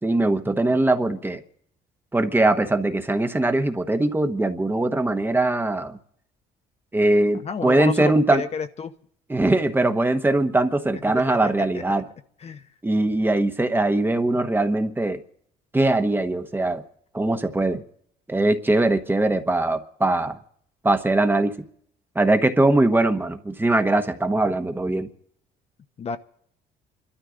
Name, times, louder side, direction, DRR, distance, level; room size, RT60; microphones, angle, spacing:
voice 1, 0.0-1.4 2.1-6.0 6.9-8.4 9.3-12.0 12.8-15.2 15.7-16.8 17.1-17.8 18.3-20.4 20.8-21.5 22.1-25.1, right 2 dB, 10° right, 1.1 m, -21 dB
voice 2, 7.4-8.9 11.3-12.0 12.4-12.6 26.0-26.2, left 6 dB, 40° left, 0.9 m, -31 dB
28.5 x 12.5 x 3.8 m
cardioid pair, 110°, 17 cm